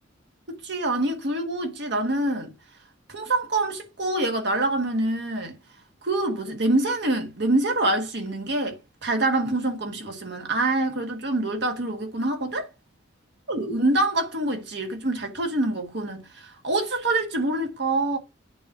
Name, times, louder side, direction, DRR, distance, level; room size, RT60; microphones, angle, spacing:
voice 1, 0.5-2.5 3.1-5.6 6.0-12.7 13.5-18.2, right 2 dB, 60° right, 1.6 m, -25 dB
8.8 x 3.0 x 5.9 m
head